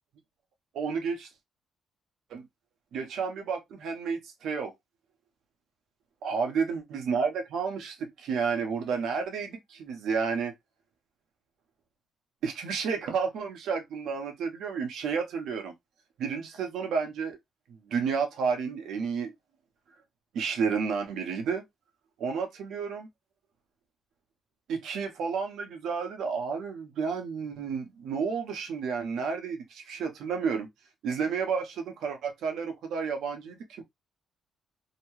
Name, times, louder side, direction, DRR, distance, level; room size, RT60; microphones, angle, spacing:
voice 1, 0.7-1.3 2.3-2.5 2.9-4.7 6.2-10.5 12.4-15.7 16.2-17.4 17.9-19.3 20.3-21.6 22.2-23.1 24.7-30.7 31.0-33.8, right 5 dB, 75° right, 0.9 m, -31 dB
2.8 x 2.2 x 3.1 m
cardioid pair, 90°, 0 cm